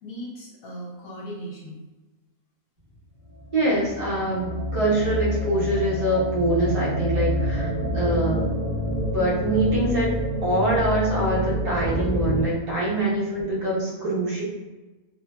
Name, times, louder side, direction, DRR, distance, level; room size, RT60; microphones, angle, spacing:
voice 1, 0.0-1.8 7.8-8.3 12.9-13.0, right 1 dB, 70° left, -4 dB, 1.2 m, -38 dB
sound 1, 3.3-12.4, equal, 30° left, 0.9 m, -27 dB
voice 2, 3.5-8.5 9.1-10.1 10.4-14.4, right 1 dB, 35° right, -7 dB, 0.6 m, -24 dB
2.6 x 2.5 x 2.2 m, 1.2 s
omnidirectional pair, 1.6 m